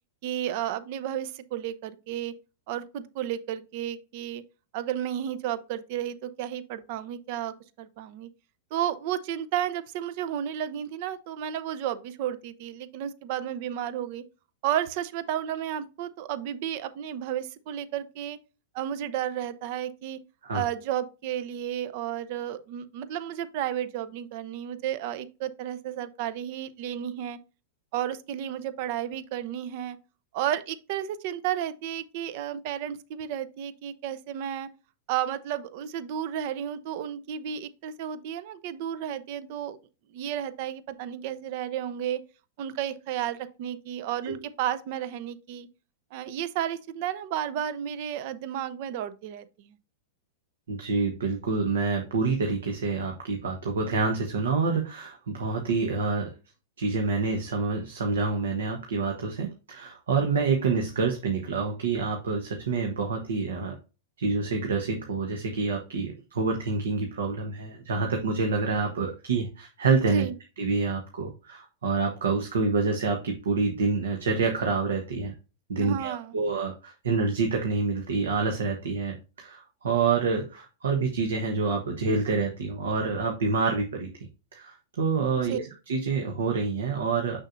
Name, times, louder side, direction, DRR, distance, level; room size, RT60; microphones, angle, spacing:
voice 1, 0.2-2.3 2.7-4.4 4.7-8.3 8.7-14.2 14.6-18.4 18.7-20.2 20.5-27.4 27.9-30.0 30.3-34.7 35.1-39.8 40.1-42.2 42.6-45.7 46.1-49.8 70.1-70.3 75.8-76.3 85.5-85.6, right 10 dB, 50° right, 0.6 m, -32 dB
voice 2, 50.7-56.3 56.8-63.8 64.2-70.3 70.6-75.3 75.7-84.1 84.5-87.4, right 4 dB, 70° right, 1.1 m, -27 dB
6.3 x 6.2 x 2.6 m
figure-of-eight pair, 95°, 0 cm